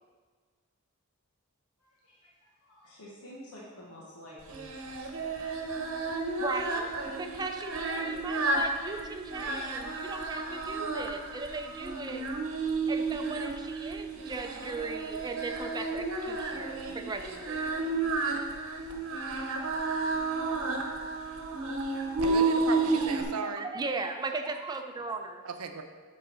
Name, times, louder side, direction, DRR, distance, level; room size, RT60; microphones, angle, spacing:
voice 1, 1.8-2.3 2.6-5.3 6.0-6.5, equal, 80° left, -5 dB, 1.2 m, -50 dB
Singing, 4.5-23.2, right 3 dB, 60° right, 0.9 m, -32 dB
voice 2, 6.4-6.9 7.2-12.3 12.9-17.7 23.4-25.4, right 3 dB, 20° right, 5 dB, 0.4 m, -37 dB
voice 3, 22.2-23.7 25.4-25.8, right 5 dB, 85° right, 6 dB, 0.7 m, -36 dB
7.8 x 3.8 x 5.5 m, 1.5 s
head